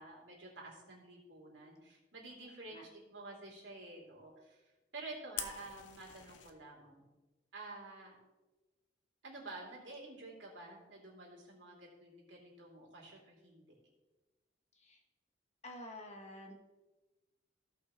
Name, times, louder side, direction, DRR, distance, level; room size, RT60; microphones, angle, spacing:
voice 1, 0.0-4.6 4.9-7.0 7.5-8.1 9.2-13.8, right 2 dB, 80° right, -3 dB, 3.1 m, -50 dB
Fire, 5.4-6.5, left 9 dB, 75° left, 0.8 m, -44 dB
voice 2, 15.6-16.5, left 1 dB, 35° left, 2 dB, 1.4 m, -49 dB
17.0 x 5.7 x 3.2 m, 1.2 s
head